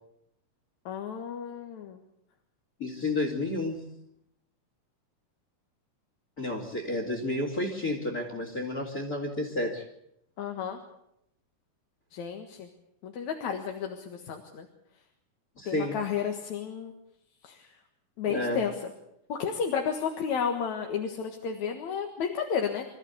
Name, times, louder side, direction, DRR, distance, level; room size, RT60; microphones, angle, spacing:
voice 1, 0.9-2.0 10.4-10.8 12.1-12.7 13.0-14.7 15.7-16.9 17.4-17.7 18.2-18.9 19.3-22.8, left 7 dB, 65° left, 4 dB, 2.9 m, -32 dB
voice 2, 2.8-3.8 6.4-9.8 15.6-16.0 18.3-18.6, left 2 dB, 30° left, 2 dB, 3.1 m, -31 dB
26.0 x 14.0 x 8.3 m, 0.79 s
omnidirectional pair, 3.6 m